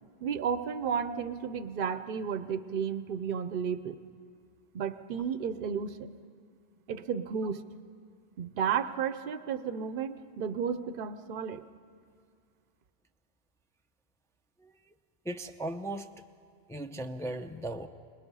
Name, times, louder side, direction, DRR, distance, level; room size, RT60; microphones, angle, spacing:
voice 1, 0.2-4.0 4.7-6.1 6.9-7.6 8.4-11.7, right 7 dB, 60° right, 12 dB, 0.8 m, -33 dB
voice 2, 14.6-14.9 15.2-16.1 16.7-17.9, right 1 dB, 5° left, 6 dB, 0.5 m, -37 dB
26.5 x 20.0 x 5.5 m, 2.3 s
omnidirectional pair, 1.1 m